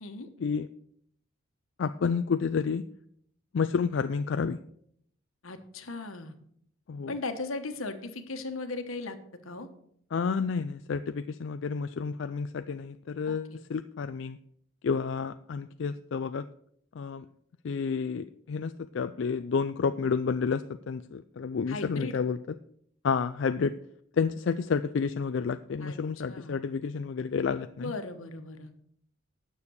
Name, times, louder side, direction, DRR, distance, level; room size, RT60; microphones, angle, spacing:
voice 1, 1.8-2.9 3.5-4.6 6.9-7.2 10.1-14.4 14.8-16.5 16.9-17.3 17.6-22.4 23.0-23.7 24.1-27.9, left 5 dB, 60° left, 10 dB, 0.4 m, -30 dB
voice 2, 5.4-6.3 7.1-9.2 9.4-9.7 13.3-13.4 21.7-22.2 25.8-26.0 26.3-26.5 27.8-28.7, left 3 dB, 80° left, 8 dB, 1.3 m, -37 dB
9.8 x 6.9 x 6.3 m, 0.68 s
head